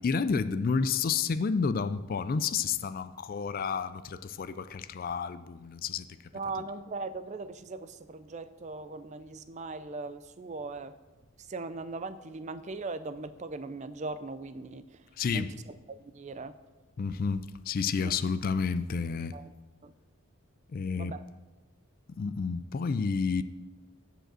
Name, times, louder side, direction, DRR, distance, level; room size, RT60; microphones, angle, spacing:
voice 1, 0.0-6.1 15.2-15.5 17.0-19.4 20.7-21.1 22.2-23.4, left 5 dB, 40° left, 0.3 m, -30 dB
voice 2, 6.3-11.0 11.4-16.6 18.0-18.2 19.3-19.5 19.8-19.9 21.0-21.3, right 3 dB, 30° right, 0.4 m, -39 dB
9.2 x 5.0 x 7.5 m
head